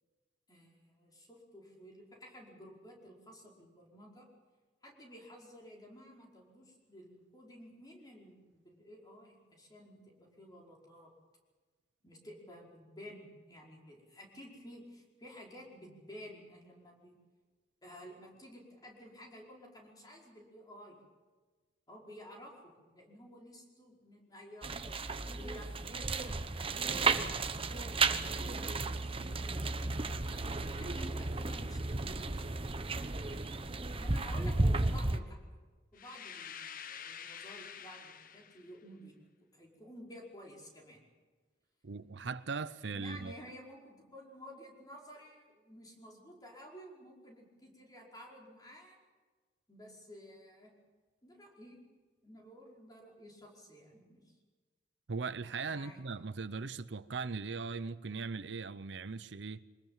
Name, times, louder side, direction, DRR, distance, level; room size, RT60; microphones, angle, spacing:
voice 1, 0.5-4.3 4.8-11.1 12.0-17.2 17.8-21.0 21.9-24.7 25.1-28.1 28.7-29.8 30.6-33.4 34.0-35.5 35.9-39.2 39.5-41.0 42.9-49.0 49.7-50.7 51.2-51.8 52.2-54.2 55.7-56.0 56.5-56.7, equal, 20° left, 5.1 m, -53 dB
sound 1, 24.6-35.2, right 3 dB, 30° right, 1.0 m, -33 dB
sound 2, 36.0-38.7, left 8 dB, 50° left, 1.0 m, -47 dB
voice 2, 41.8-43.4 55.1-59.6, right 4 dB, 75° right, 0.7 m, -39 dB
24.5 x 20.5 x 7.4 m
head